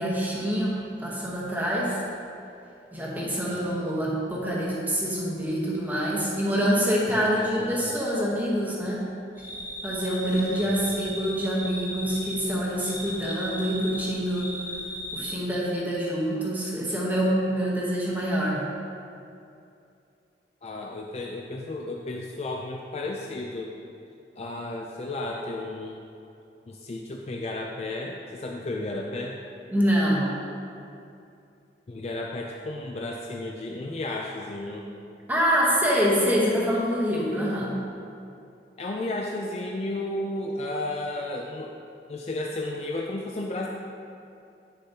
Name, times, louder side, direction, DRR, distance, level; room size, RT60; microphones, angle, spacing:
voice 1, 0.0-2.0 2.9-9.1 9.8-14.5 15.1-18.6 29.7-30.3 35.3-37.7, equal, 10° right, -6 dB, 1.0 m, -26 dB
voice 2, 3.2-3.8 7.1-7.9 10.6-10.9 20.6-23.7 24.4-26.0 26.7-29.4 31.9-34.9 38.8-41.7 42.1-43.7, left 2 dB, 35° left, 0 dB, 0.4 m, -33 dB
sound 1, 9.4-15.3, equal, 15° left, 1.0 m, -37 dB
9.3 x 6.8 x 2.8 m, 2.6 s
head